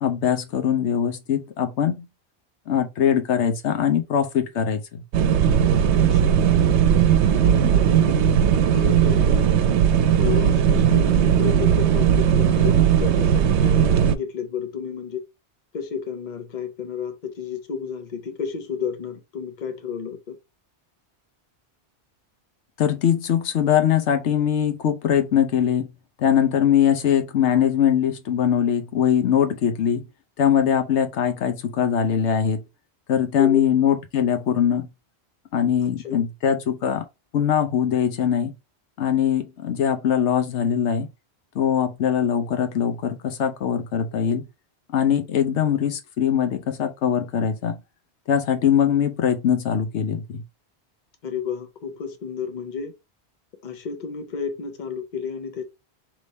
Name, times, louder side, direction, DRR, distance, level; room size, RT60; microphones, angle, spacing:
voice 1, 0.0-2.1 2.7-4.8 7.6-7.7 22.8-25.9 26.2-30.1 30.4-32.6 33.1-34.9 35.5-37.0 37.3-38.5 39.0-41.1 41.5-44.5 44.9-47.8 48.3-50.4, left 8 dB, 90° left, 1.0 m, -22 dB
sound 1, 5.1-14.2, right 9 dB, 85° right, 0.9 m, -18 dB
voice 2, 6.0-6.5 7.3-9.6 10.2-15.2 15.7-20.4 33.4-33.6 36.0-36.2 51.2-52.9 53.6-55.6, left 6 dB, 45° left, 0.9 m, -31 dB
3.4 x 3.1 x 4.0 m
omnidirectional pair, 1.1 m